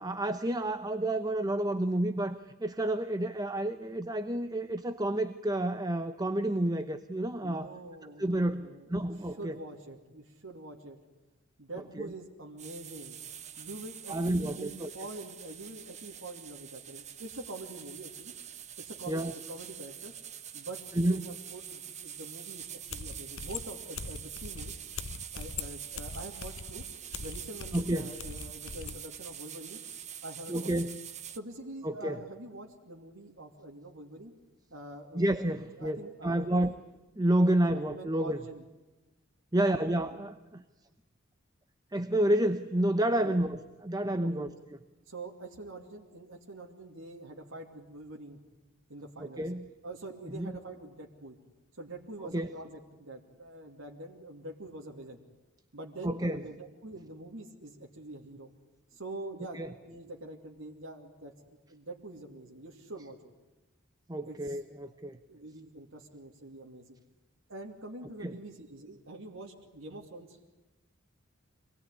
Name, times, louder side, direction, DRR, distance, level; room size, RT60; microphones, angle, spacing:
voice 1, 0.0-7.7 8.0-9.6 12.0-12.1 14.1-14.9 19.1-19.3 21.0-21.2 27.7-28.1 30.5-31.0 31.8-32.2 35.1-36.0 36.2-36.7 37.2-38.4 39.5-40.6 41.9-44.5 49.2-49.6 50.3-50.5 52.3-52.5 56.0-56.4 59.5-59.7 64.1-65.2 68.2-68.4, right 1 dB, 20° right, 9 dB, 0.8 m, -30 dB
voice 2, 7.4-11.0 11.6-13.2 13.6-18.3 18.8-19.2 19.5-20.1 20.5-24.8 25.3-26.9 27.2-29.8 30.2-30.7 31.3-34.3 34.7-35.3 35.6-36.8 37.6-37.7 37.9-38.6 39.5-39.9 43.2-43.3 44.2-44.5 45.1-48.4 48.9-49.5 49.8-51.4 51.8-55.2 55.7-58.5 58.9-63.2 64.2-64.6 65.3-67.0 67.5-70.4, right 2 dB, 80° right, -1 dB, 2.7 m, -45 dB
Pressure Cooker, 12.6-31.4, right 9 dB, 35° right, 1.1 m, -45 dB
sound 1, 22.9-29.0, left 5 dB, 75° left, 1.0 m, -42 dB
26.5 x 20.0 x 9.9 m, 1.1 s
head